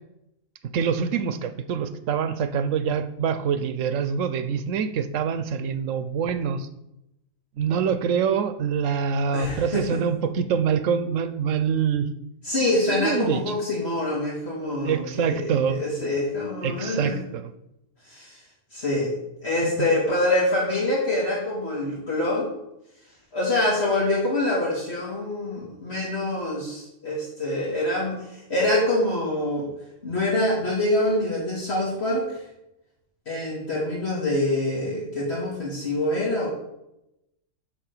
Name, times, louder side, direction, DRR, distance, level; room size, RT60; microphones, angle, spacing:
voice 1, 0.7-6.7 7.6-12.1 12.9-13.4 14.8-15.8 16.6-17.5 19.6-19.9, right 7 dB, 85° right, 11 dB, 1.1 m, -25 dB
voice 2, 9.3-10.0 12.4-17.2 18.1-18.4 18.7-19.1 19.4-22.5 23.3-29.7 30.0-32.4 33.3-36.5, left 1 dB, 55° left, -5 dB, 2.5 m, -25 dB
10.5 x 3.7 x 6.7 m, 0.85 s
omnidirectional pair, 1.3 m